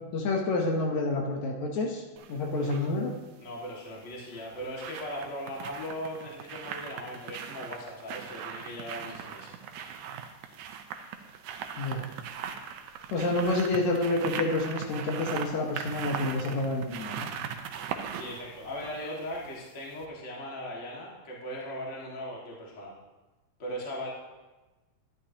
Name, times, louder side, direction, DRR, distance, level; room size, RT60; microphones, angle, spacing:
voice 1, 0.0-2.0 2.3-3.2 11.8-12.0 13.1-17.3, left 2 dB, 70° left, 0 dB, 2.3 m, -28 dB
sound 1, 2.2-2.9 4.1-19.7 20.0-20.1, right 8 dB, 80° right, 2.0 m, -39 dB
voice 2, 3.4-9.6 18.1-22.9 23.6-24.1, equal, 30° left, -3 dB, 1.7 m, -38 dB
11.5 x 11.0 x 2.9 m, 1.2 s
omnidirectional pair, 3.5 m